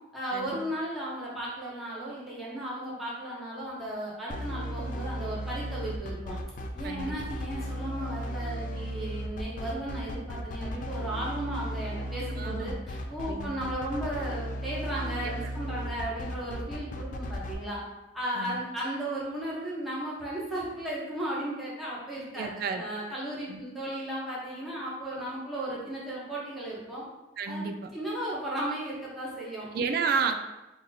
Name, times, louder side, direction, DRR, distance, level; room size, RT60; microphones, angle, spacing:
voice 1, 0.1-6.4 6.7-17.8 18.1-27.0 27.5-27.6 27.9-29.7, right 1 dB, ahead, -8 dB, 0.9 m, -35 dB
sound 1, 4.3-17.5, equal, 45° left, 0.3 m, -35 dB
voice 2, 6.8-7.2 12.4-12.7 13.3-13.6 15.2-15.3 18.3-18.6 22.4-22.8 23.5-23.6 27.4-27.8 29.7-30.3, right 5 dB, 55° right, 7 dB, 0.3 m, -31 dB
3.0 x 2.6 x 3.8 m, 1.0 s
head